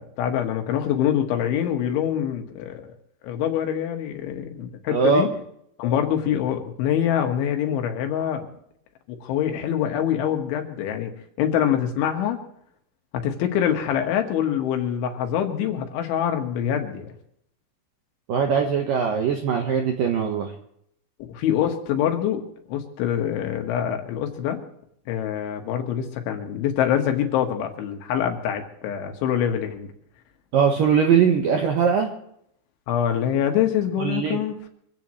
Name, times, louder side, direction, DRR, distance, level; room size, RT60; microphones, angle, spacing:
voice 1, 0.0-2.8 3.2-5.3 5.8-8.5 9.1-11.1 11.4-12.4 13.1-17.1 21.3-22.4 22.7-24.6 25.1-29.9 32.9-34.7, left 9 dB, 75° left, 5 dB, 3.8 m, -25 dB
voice 2, 4.9-5.3 18.3-20.5 30.5-32.1 34.0-34.4, right 6 dB, 75° right, 3 dB, 2.1 m, -21 dB
25.0 x 16.5 x 3.2 m, 0.71 s
omnidirectional pair, 5.7 m